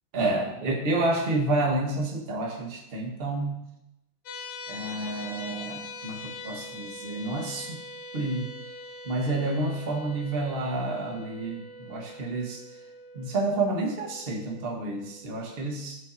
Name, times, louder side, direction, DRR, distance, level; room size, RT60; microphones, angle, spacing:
voice 1, 0.1-3.6 4.7-7.8 8.1-8.5 9.0-12.6 13.1-16.0, right 2 dB, 35° right, 0 dB, 1.1 m, -29 dB
sound 1, 4.3-15.4, left 2 dB, 65° left, 1.7 m, -43 dB
12.5 x 5.6 x 2.7 m, 0.90 s
omnidirectional pair, 2.4 m